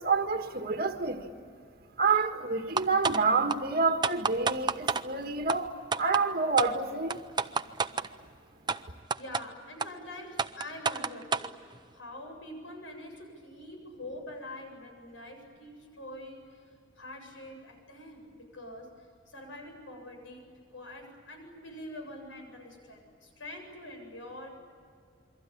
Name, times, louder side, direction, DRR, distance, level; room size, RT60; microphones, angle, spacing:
voice 1, 0.0-1.4 2.0-5.7 6.0-7.2, right 4 dB, 50° right, 1.7 m, -28 dB
sound 1, 2.8-3.2 3.5-3.6 4.0-5.0 5.5-5.6 5.9-6.2 6.6-6.7 7.1-8.1 8.7-8.8 9.1-9.4 9.8-9.9 10.4-11.5, right 5 dB, 25° right, 0.6 m, -28 dB
voice 2, 9.1-24.5, left 1 dB, 75° left, 8.0 m, -45 dB
28.0 x 24.0 x 8.6 m
head